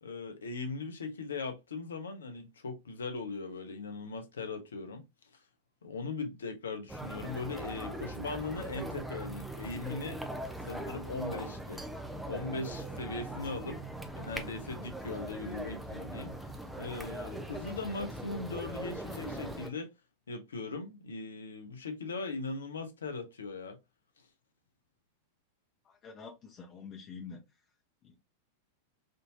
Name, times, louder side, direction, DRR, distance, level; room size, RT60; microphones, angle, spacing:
voice 1, 0.0-5.0 5.8-10.2 10.6-11.8 12.3-13.8 14.2-16.3 16.8-19.9 20.3-23.8, left 3 dB, 75° left, 0.6 m, -39 dB
sound 1, 6.9-19.7, right 1 dB, 5° right, 0.5 m, -41 dB
voice 2, 25.8-27.4 28.0-28.1, left 5 dB, 35° left, 0.8 m, -47 dB
3.6 x 2.6 x 2.5 m
figure-of-eight pair, 95°, 0 cm